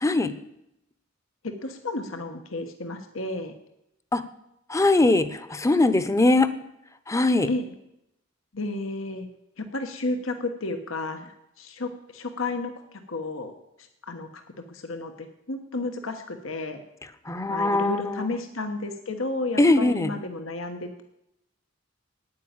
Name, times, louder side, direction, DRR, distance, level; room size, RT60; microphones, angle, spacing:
voice 1, 0.0-0.3 4.1-4.2 4.7-6.5 7.1-7.5 17.3-18.3 19.6-20.1, left 2 dB, 15° left, 13 dB, 0.8 m, -21 dB
voice 2, 1.4-3.5 7.5-7.7 8.5-9.3 9.6-11.3 11.6-12.7 13.1-13.5 14.1-14.4 14.7-16.8 17.5-21.0, left 2 dB, 85° left, 7 dB, 1.3 m, -32 dB
9.5 x 9.3 x 8.8 m, 0.83 s
head